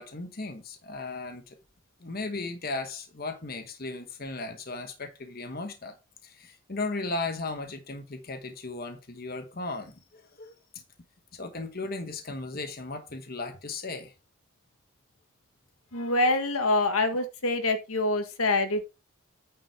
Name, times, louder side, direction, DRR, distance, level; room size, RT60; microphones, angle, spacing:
voice 1, 0.0-1.6 2.0-6.0 6.2-10.5 11.3-14.1 16.1-16.3, left 3 dB, 45° left, 1.1 m, -36 dB
voice 2, 15.9-18.8, left 2 dB, 80° left, 1.5 m, -25 dB
9.1 x 5.0 x 4.4 m
head